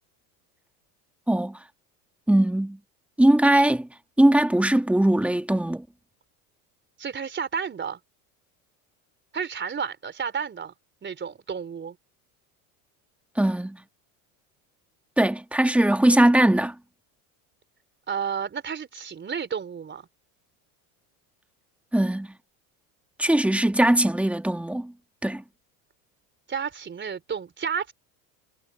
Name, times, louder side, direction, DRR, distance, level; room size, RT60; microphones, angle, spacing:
voice 1, 1.3-1.6 2.3-2.8 3.2-3.9 4.2-5.8 13.4-13.8 15.2-16.8 21.9-22.3 23.2-24.9 25.2-25.4, right 1 dB, 5° right, 2.0 m, -20 dB
voice 2, 7.0-8.0 9.3-10.7 11.0-12.0 18.1-20.1 26.5-27.9, right 6 dB, 25° right, 3.9 m, -31 dB
supercardioid pair, 110°, 42 cm